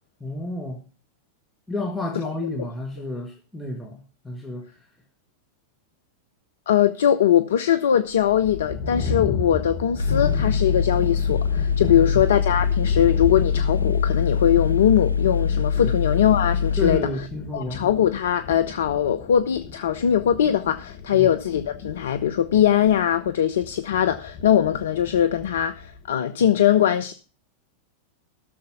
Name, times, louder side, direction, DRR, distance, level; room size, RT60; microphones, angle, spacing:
voice 1, 0.2-0.8 1.7-4.7 11.9-12.2 15.8-15.9 16.8-17.9 21.1-21.3, left 2 dB, 5° left, 2.1 m, -31 dB
voice 2, 6.7-17.0 17.5-27.1, left 10 dB, 60° left, 0.6 m, -21 dB
sound 1, 8.1-26.1, left 5 dB, 45° left, 1.6 m, -34 dB
Mechanical fan, 10.0-17.0, left 6 dB, 90° right, 0.5 m, -23 dB
12.0 x 6.7 x 6.8 m
figure-of-eight pair, 90°, 0 cm